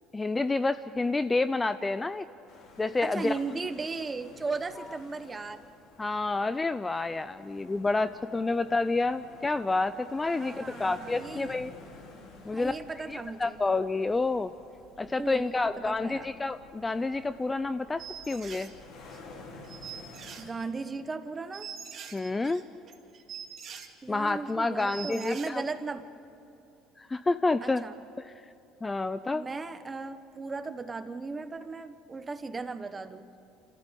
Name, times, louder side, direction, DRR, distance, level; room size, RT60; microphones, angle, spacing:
voice 1, 0.1-2.3 2.8-3.4 6.0-11.7 12.5-12.7 13.1-14.5 15.0-18.7 22.1-22.6 24.1-25.6 27.0-27.8 28.2-28.3 28.8-29.5, left 3 dB, 15° left, 13 dB, 0.4 m, -29 dB
sound 1, 2.5-20.5, left 3 dB, 60° left, 3.6 m, -51 dB
voice 2, 3.0-5.6 10.3-11.6 12.5-13.6 15.2-16.4 20.4-21.7 24.0-26.1 27.6-28.0 29.3-33.3, right 4 dB, 20° right, 10 dB, 1.1 m, -37 dB
sound 2, 18.0-18.7 19.1-19.2 19.6-20.8 21.1-21.2 21.5-23.9 24.3-24.5 24.8-25.5, right 8 dB, 45° right, 2.2 m, -43 dB
26.5 x 14.5 x 8.3 m, 2.8 s
cardioid pair, 115°, 0 cm